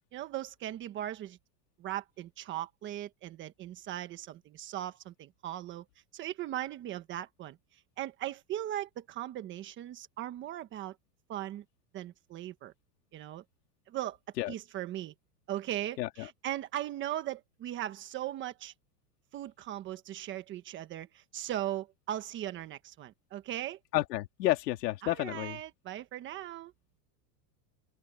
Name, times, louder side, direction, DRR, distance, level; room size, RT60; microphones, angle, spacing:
voice 1, 0.1-1.4 1.8-5.8 6.1-7.6 8.0-11.0 11.3-11.6 11.9-12.7 13.1-13.4 13.9-14.2 14.5-15.1 15.5-18.7 19.3-23.8 25.0-26.7, right 13 dB, 25° right, 1.2 m, -38 dB
voice 2, 23.9-25.6, left 16 dB, 80° left, 3.1 m, -30 dB
open air
supercardioid pair, 170°, 48 cm